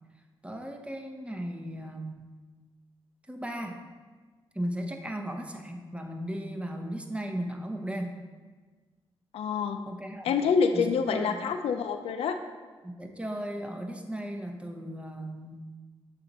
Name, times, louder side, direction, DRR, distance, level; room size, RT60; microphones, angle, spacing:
voice 1, 0.4-2.3 3.3-3.8 4.5-8.2 9.9-10.4 10.7-11.4 12.8-15.8, equal, 10° right, 4 dB, 0.8 m, -36 dB
voice 2, 9.3-9.8 10.2-12.3, left 6 dB, 80° left, 6 dB, 0.4 m, -26 dB
6.7 x 4.0 x 4.2 m, 1.4 s
cardioid pair, 55°, 10 cm